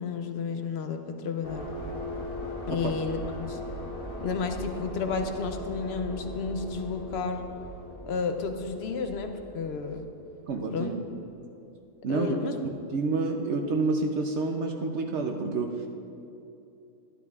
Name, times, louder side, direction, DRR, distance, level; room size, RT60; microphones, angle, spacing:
voice 1, 0.0-1.6 2.7-3.6 4.2-7.4 8.1-10.1 10.7-10.9 12.1-12.6, left 5 dB, 60° left, 6 dB, 0.7 m, -32 dB
sound 1, 1.4-10.9, left 1 dB, 85° left, 1.7 m, -39 dB
voice 2, 10.5-11.0 12.0-12.3 12.6-15.7, right 3 dB, 60° right, 3 dB, 0.8 m, -28 dB
12.5 x 11.5 x 2.4 m, 2.7 s
omnidirectional pair, 1.5 m